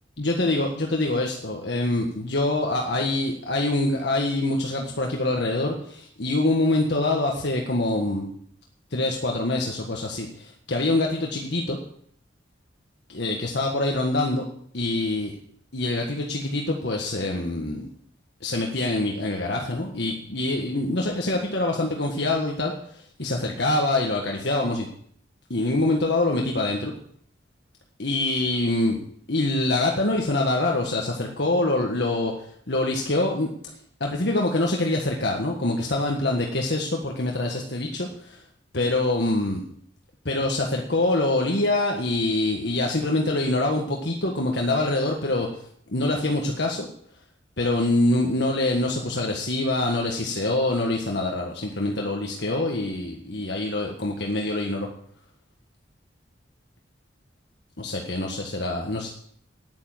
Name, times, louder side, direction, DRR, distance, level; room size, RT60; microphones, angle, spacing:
voice 1, 0.2-8.3 8.9-11.8 13.1-14.4 14.7-15.3 15.7-17.9 18.4-24.9 25.5-26.9 28.0-29.0 29.3-32.3 32.7-33.5 34.0-38.4 38.7-39.6 40.2-45.5 45.9-46.9 47.6-54.9 57.8-59.1, left 2 dB, 65° left, 1 dB, 1.6 m, -25 dB
9.8 x 9.3 x 7.9 m, 0.62 s
head